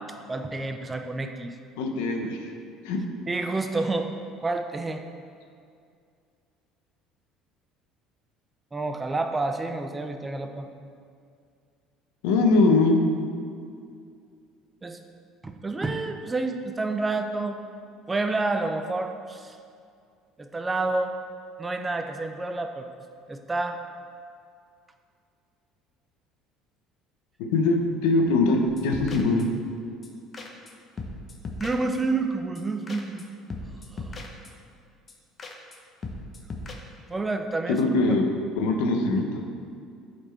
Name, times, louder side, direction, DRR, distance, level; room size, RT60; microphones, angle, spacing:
voice 1, 0.3-1.6 3.3-4.1 4.4-5.0 8.7-10.7 14.8-15.0 15.4-17.6 18.1-19.6 20.4-21.2 21.6-22.9 23.3-23.8 31.6-33.3 33.9-34.2 37.1-37.8 38.1-38.2, right 3 dB, 20° right, 6 dB, 0.5 m, -29 dB
voice 2, 1.8-2.4 2.8-3.0 12.2-13.0 27.4-29.5 37.8-38.2 38.6-39.5, left 3 dB, 85° left, 3 dB, 0.8 m, -22 dB
sound 1, 28.7-29.7 30.0-30.1 30.3-30.7 31.0-32.2 32.6-32.7 32.9-33.2 33.5-34.7 35.1-35.2 35.4-35.8 36.0-36.7, left 2 dB, 30° left, 0.8 m, -39 dB
8.2 x 4.3 x 4.4 m, 2.3 s
supercardioid pair, 100°, 0 cm